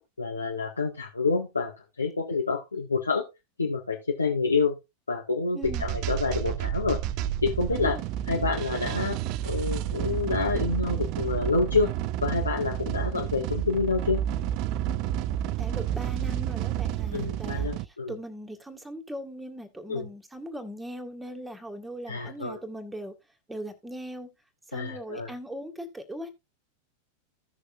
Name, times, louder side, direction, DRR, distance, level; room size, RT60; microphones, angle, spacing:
voice 1, 0.2-1.7 2.0-3.2 3.6-4.8 5.1-7.0 7.4-8.0 8.3-9.2 9.4-11.9 12.2-14.2 17.1-18.1 19.9-20.1 22.1-22.6 24.7-25.3, left 4 dB, 80° left, 1.6 m, -28 dB
voice 2, 5.5-5.8 7.7-8.1 15.6-23.1 23.5-24.3 24.7-26.3, right 1 dB, 5° right, 1.9 m, -39 dB
sound 1, 5.6-17.9, right 11 dB, 40° right, 0.5 m, -30 dB
15.5 x 6.6 x 2.5 m
figure-of-eight pair, 90°, 0 cm